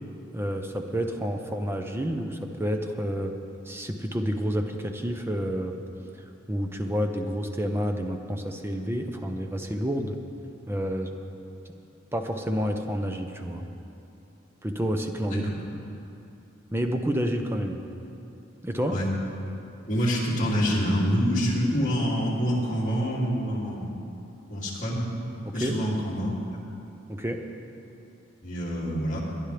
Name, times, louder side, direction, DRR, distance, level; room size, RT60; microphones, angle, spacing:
voice 1, 0.3-3.4 3.6-5.8 6.1-10.2 10.7-11.1 12.1-13.7 14.6-15.5 16.7-17.9 18.6-19.0 25.4-25.8 27.1-27.4, equal, 10° right, 4 dB, 0.7 m, -29 dB
voice 2, 19.9-23.9 24.5-25.1 25.5-26.6 28.4-29.2, equal, 40° left, -7 dB, 2.7 m, -26 dB
21.5 x 10.5 x 3.4 m, 2.8 s
head